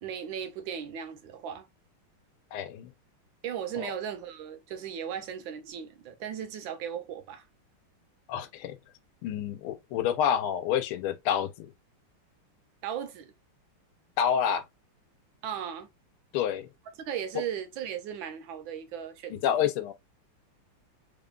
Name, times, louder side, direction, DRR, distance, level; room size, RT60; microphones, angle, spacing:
voice 1, 0.0-1.7 3.4-7.4 12.8-13.3 15.4-15.9 17.0-19.7, right 9 dB, 75° right, 1.3 m, -37 dB
voice 2, 2.5-2.9 3.8-3.9 8.3-8.7 9.2-11.7 14.2-14.6 16.3-16.7 19.3-19.9, left 9 dB, 85° left, 1.5 m, -28 dB
3.7 x 3.4 x 2.3 m
omnidirectional pair, 2.3 m